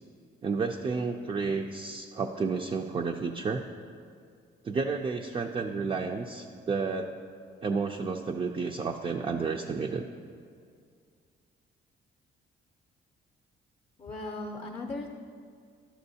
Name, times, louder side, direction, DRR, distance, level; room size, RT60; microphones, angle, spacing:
voice 1, 0.4-3.7 4.6-7.1 7.6-10.1, right 4 dB, 25° right, 3 dB, 0.4 m, -31 dB
voice 2, 14.0-15.1, left 2 dB, 30° left, 2 dB, 0.6 m, -37 dB
11.5 x 6.1 x 2.7 m, 2.2 s
cardioid pair, 90°, 20 cm